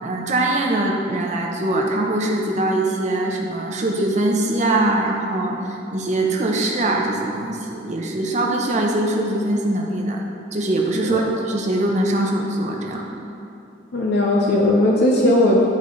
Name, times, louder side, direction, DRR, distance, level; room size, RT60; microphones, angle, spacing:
voice 1, 0.0-5.6 5.9-10.2 10.5-13.0, right 1 dB, 40° right, 0 dB, 0.8 m, -22 dB
voice 2, 11.0-11.3 13.9-15.6, left 1 dB, 60° left, -2 dB, 0.6 m, -17 dB
10.5 x 4.2 x 3.1 m, 2.6 s
head